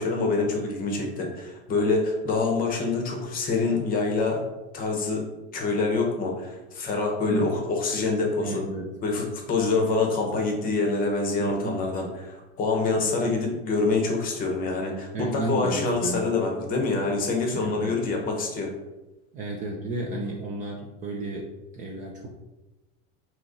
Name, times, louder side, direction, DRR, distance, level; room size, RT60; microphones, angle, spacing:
voice 1, 0.0-4.4 4.7-5.2 5.5-8.6 9.0-18.7, left 3 dB, 25° left, 1 dB, 0.7 m, -26 dB
voice 2, 8.4-8.9 11.4-11.8 12.9-13.2 15.1-16.3 17.5-18.0 19.3-21.5 21.7-22.3, right 2 dB, 25° right, -1 dB, 0.4 m, -32 dB
3.9 x 2.9 x 3.7 m, 1.1 s
supercardioid pair, 155°, 32 cm